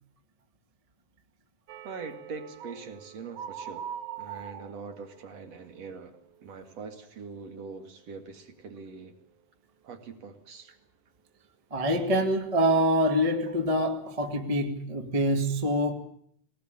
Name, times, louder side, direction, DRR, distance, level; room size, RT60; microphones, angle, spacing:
sound 1, 1.7-7.5 7.7-8.1 8.5-8.7, right 9 dB, 85° right, 1.3 m, -44 dB
voice 1, 1.8-3.9 4.2-9.1 9.8-10.7, right 4 dB, 45° right, 2.8 m, -43 dB
voice 2, 11.7-15.9, equal, 25° right, 0.6 m, -25 dB
22.0 x 19.0 x 8.9 m
omnidirectional pair, 4.6 m